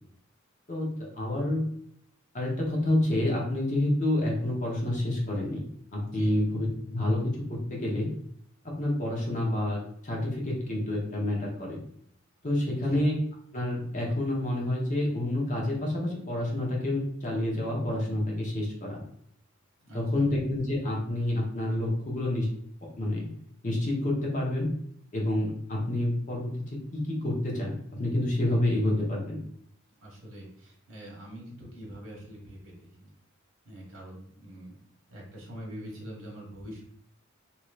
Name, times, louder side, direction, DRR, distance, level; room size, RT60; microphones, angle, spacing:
voice 1, 0.7-1.7 2.3-5.6 5.9-8.1 8.6-11.8 12.4-13.1 13.5-19.0 19.9-22.5 23.0-23.3 23.6-24.7 25.1-29.4, left 1 dB, 40° left, -2 dB, 0.8 m, -28 dB
voice 2, 6.0-6.4 12.7-13.0 19.8-20.3 30.0-33.1 33.6-34.8 35.1-36.9, equal, 75° right, -3 dB, 1.3 m, -44 dB
3.1 x 2.9 x 2.4 m, 0.68 s
head